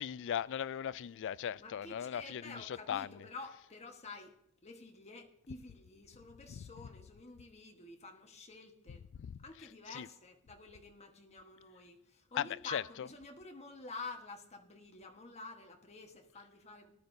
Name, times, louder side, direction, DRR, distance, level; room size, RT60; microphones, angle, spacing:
voice 1, 0.0-3.1 6.5-6.7 9.2-9.4 9.9-10.1 12.3-12.8, left 9 dB, 55° left, 0.3 m, -38 dB
voice 2, 1.6-4.3 4.6-9.0 9.4-16.9, left 3 dB, 30° left, 1.3 m, -50 dB
18.5 x 12.0 x 2.7 m
head